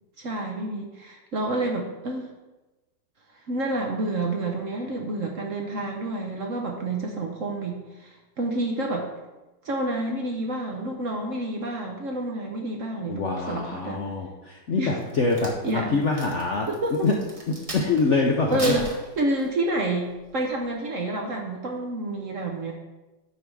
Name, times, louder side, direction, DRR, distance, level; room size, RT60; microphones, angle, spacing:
voice 1, 0.2-2.3 3.5-9.1 9.6-14.0 14.8-14.9 15.6-16.0 16.7-16.9 18.5-18.8 19.2-22.7, right 2 dB, 50° right, 1 dB, 1.1 m, -29 dB
voice 2, 13.1-16.7 17.0-17.1 17.5-18.8, left 3 dB, 60° left, 0 dB, 0.8 m, -25 dB
Crack, 15.0-18.1 18.5-19.7 20.2-20.5, right 1 dB, 20° right, 1.1 m, -37 dB
9.5 x 3.5 x 6.1 m, 1.1 s
omnidirectional pair, 2.0 m